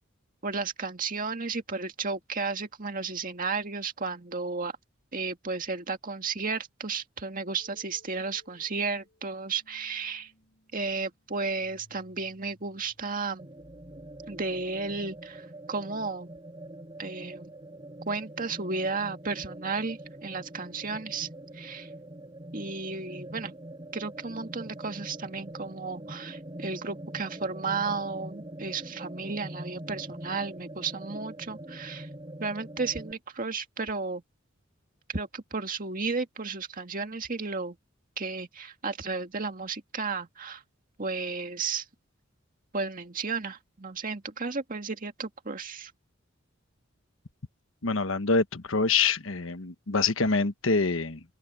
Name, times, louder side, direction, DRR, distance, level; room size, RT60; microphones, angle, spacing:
voice 1, 0.4-4.7 5.1-10.3 10.7-13.5 14.3-16.3 17.0-17.5 18.1-21.3 21.5-21.9 22.5-23.5 23.9-32.1 32.4-34.2 35.1-37.8 38.2-40.6 41.0-41.9 42.7-45.9, right 4 dB, 45° right, 2.0 m, -33 dB
sound 1, 7.6-15.4, left 1 dB, 55° left, 7.1 m, -62 dB
sound 2, 13.4-33.1, right 1 dB, 25° right, 5.6 m, -43 dB
voice 2, 47.8-51.2, left 4 dB, 75° left, 1.3 m, -26 dB
open air
head